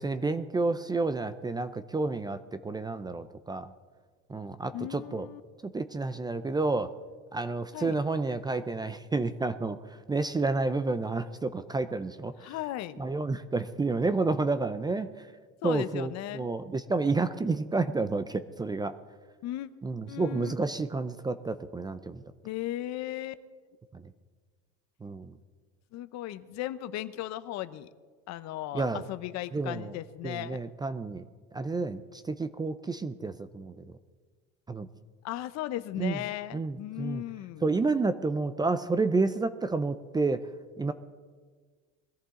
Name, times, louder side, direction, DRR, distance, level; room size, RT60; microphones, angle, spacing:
voice 1, 0.0-3.7 4.3-5.3 5.6-6.9 7.3-12.5 13.0-15.3 15.6-19.0 19.8-22.2 23.9-24.0 25.0-25.3 28.7-29.0 29.5-29.9 30.2-31.2 31.5-33.7 34.7-34.9 36.0-36.2 36.5-37.2 37.6-40.5 40.8-40.9, right 3 dB, 15° right, 12 dB, 0.5 m, -30 dB
voice 2, 4.7-5.4 7.7-8.0 12.4-13.0 15.6-16.5 19.4-19.7 20.1-20.5 22.4-23.3 25.9-27.9 28.3-30.6 35.2-37.7, left 14 dB, 55° left, 13 dB, 0.8 m, -36 dB
21.5 x 14.0 x 3.7 m, 1.5 s
cardioid pair, 130°, 32 cm